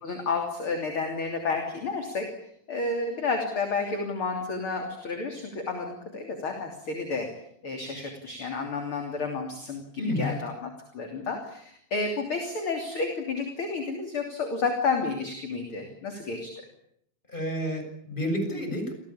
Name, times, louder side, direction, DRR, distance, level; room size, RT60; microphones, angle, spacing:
voice 1, 0.0-2.3 2.7-7.3 7.6-10.7 10.9-16.5, left 4 dB, 35° left, 3 dB, 3.7 m, -31 dB
voice 2, 10.0-10.4 17.3-18.9, equal, 10° left, 5 dB, 7.2 m, -30 dB
28.5 x 18.0 x 8.7 m, 0.72 s
omnidirectional pair, 4.3 m